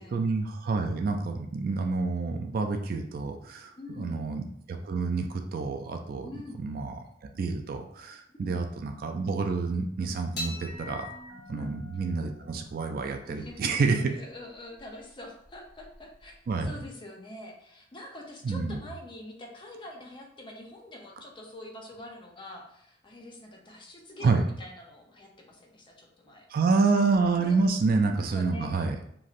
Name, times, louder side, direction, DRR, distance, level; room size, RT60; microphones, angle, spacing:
voice 1, 0.1-3.7 4.0-4.4 4.7-6.3 6.6-7.0 7.3-11.1 11.5-14.0 16.5-16.7 18.4-18.8 24.2-24.4 26.5-29.0, right 4 dB, 50° right, 5 dB, 0.3 m, -28 dB
voice 2, 3.7-4.2 6.2-6.6 8.3-8.6 11.5-11.8 13.3-26.4 27.4-27.6 28.1-28.9, left 1 dB, 25° left, 0 dB, 0.5 m, -45 dB
sound 1, 10.4-16.9, left 1 dB, 60° left, 0.8 m, -45 dB
3.0 x 2.6 x 2.4 m, 0.71 s
head